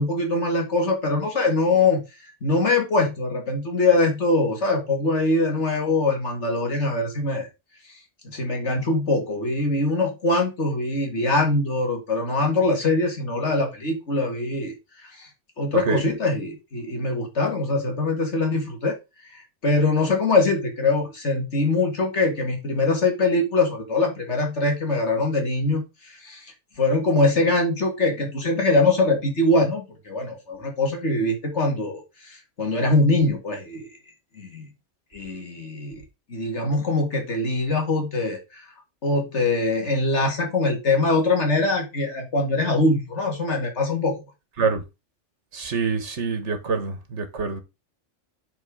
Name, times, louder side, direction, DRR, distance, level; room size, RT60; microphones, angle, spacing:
voice 1, 0.0-2.0 2.4-7.5 8.3-14.7 15.2-15.3 15.6-18.9 19.3-26.4 26.8-33.9 34.4-34.6 35.1-36.0 36.3-38.6 39.0-44.2, left 2 dB, 60° left, 2.3 m, -23 dB
voice 2, 45.5-47.6, right 5 dB, 65° right, 1.7 m, -26 dB
8.0 x 4.6 x 4.9 m
omnidirectional pair, 1.3 m